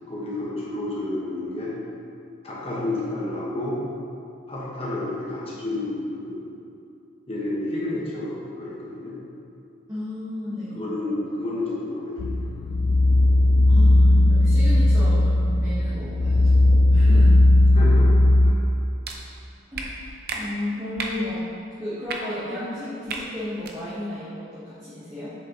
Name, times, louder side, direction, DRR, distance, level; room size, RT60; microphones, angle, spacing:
voice 1, 0.1-1.7 2.4-3.8 4.5-6.4 7.3-9.2 10.7-12.5 17.0-17.1 17.7-18.1 18.4-18.6, left 2 dB, 30° left, -6 dB, 1.2 m, -30 dB
voice 2, 9.9-10.8 13.7-17.3 19.7-19.9 20.3-21.4 21.8-25.3, left 1 dB, 15° right, -11 dB, 1.1 m, -33 dB
sound 1, 12.2-18.5, left 1 dB, 70° left, 0.4 m, -17 dB
sound 2, 19.0-19.2 19.7-19.9 20.3-20.4 21.0-21.2 22.0-22.2 23.1-23.2 23.6-23.7, right 5 dB, 50° right, 0.6 m, -31 dB
7.5 x 6.5 x 2.9 m, 2.6 s
head